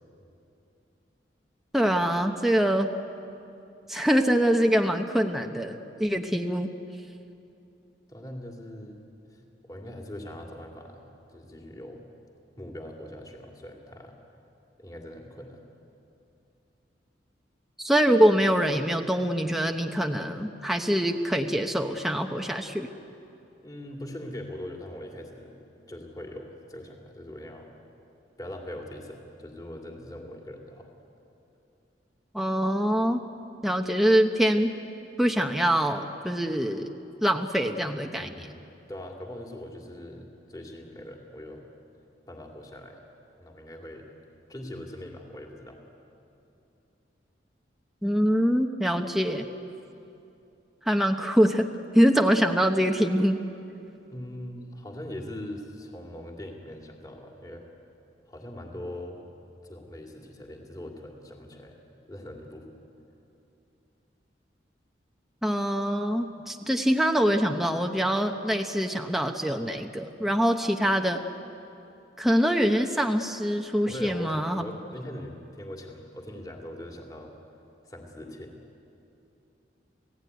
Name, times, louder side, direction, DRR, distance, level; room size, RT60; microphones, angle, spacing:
voice 1, 1.7-2.9 3.9-6.7 17.8-22.9 32.3-33.2 33.6-34.7 35.2-36.9 37.2-38.3 48.0-49.5 50.8-51.7 51.9-53.4 65.4-71.2 72.2-74.6, equal, ahead, 3 dB, 0.9 m, -24 dB
voice 2, 8.1-9.0 9.3-11.0 11.3-12.1 12.6-14.1 14.8-15.6 23.6-25.6 25.9-27.7 28.4-30.9 38.1-41.7 42.3-43.0 43.4-44.1 44.5-45.8 54.1-57.7 58.3-59.2 59.6-61.8 62.1-62.7 73.9-77.3 77.8-78.6, left 1 dB, 20° left, 1 dB, 2.6 m, -41 dB
30.0 x 17.0 x 9.5 m, 2.8 s
head